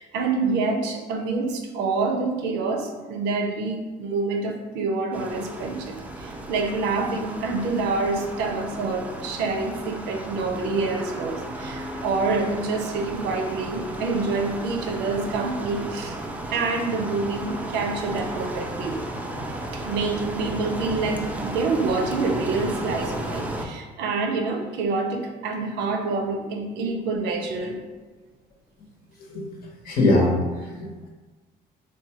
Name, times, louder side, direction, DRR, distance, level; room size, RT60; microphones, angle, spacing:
voice 1, 0.0-16.2 16.5-19.0 19.7-27.8, right 3 dB, 85° right, 3 dB, 0.5 m, -27 dB
sound 1, 5.1-23.7, right 1 dB, 10° right, 0.3 m, -34 dB
voice 2, 29.3-31.1, left 2 dB, 60° left, -1 dB, 0.9 m, -23 dB
3.9 x 2.3 x 2.8 m, 1.3 s
cardioid pair, 110°, 17 cm